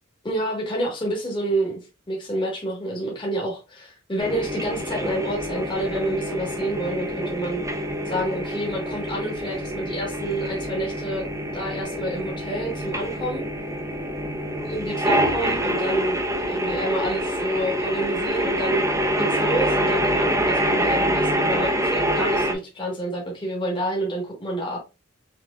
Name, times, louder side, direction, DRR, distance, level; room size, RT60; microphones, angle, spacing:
voice 1, 0.2-7.6 8.0-11.2 11.5-13.4 14.7-18.8 19.2-24.8, right 1 dB, 25° left, -2 dB, 1.4 m, -28 dB
sound 1, 4.2-22.5, equal, 15° right, 0.7 m, -26 dB
6.0 x 3.0 x 2.4 m, 0.28 s
head